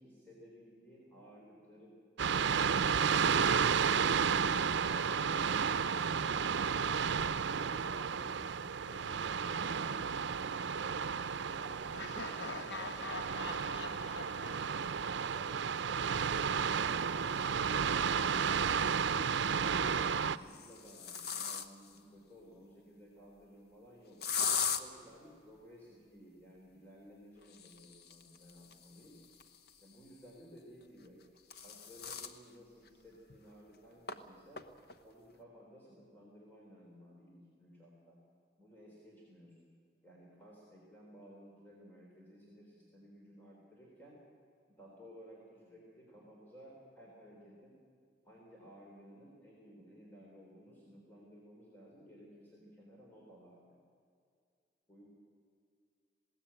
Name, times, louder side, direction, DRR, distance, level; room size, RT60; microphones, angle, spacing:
voice 1, 0.0-2.0 7.5-11.0 11.5-14.8 15.3-15.7 19.0-24.2 24.6-29.2 29.8-31.2 31.6-34.6 35.0-38.2 38.6-39.7 40.0-44.2 44.7-47.8 48.2-53.6 54.9-55.1, equal, 10° left, -4 dB, 3.5 m, -56 dB
sound 1, 2.2-20.4, right 6 dB, 90° right, 0.6 m, -32 dB
Laughter, 11.9-15.8, left 3 dB, 75° left, 1.3 m, -45 dB
sound 2, 17.8-17.9 19.4-19.8 20.4-22.0 24.2-24.8 27.4-30.0 31.0-32.4 32.9-33.0 33.3-33.4 34.1-34.2 34.6-34.9, left 7 dB, 60° left, 1.0 m, -39 dB
20.5 x 17.0 x 8.8 m, 2.3 s
head